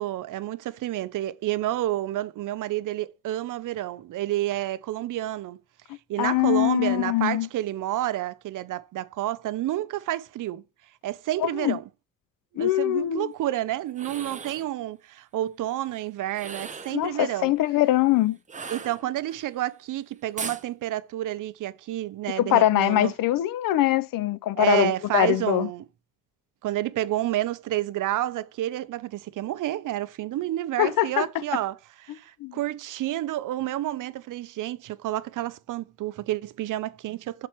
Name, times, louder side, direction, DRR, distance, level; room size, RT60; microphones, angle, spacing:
voice 1, 0.0-5.6 6.1-10.6 11.0-11.8 12.5-17.5 18.7-23.1 24.6-25.8 26.6-31.8 32.0-37.5, right 14 dB, 70° right, 0.5 m, -29 dB
voice 2, 6.2-7.5 11.4-11.8 12.6-13.3 16.9-18.4 22.4-25.7 30.8-31.4 32.4-32.5, left 14 dB, 80° left, 0.5 m, -23 dB
sound 1, 13.9-14.7 16.3-17.0 18.5-19.4 20.4-20.7, right 5 dB, 25° right, 0.6 m, -37 dB
6.1 x 4.2 x 4.4 m
cardioid pair, 130°, 33 cm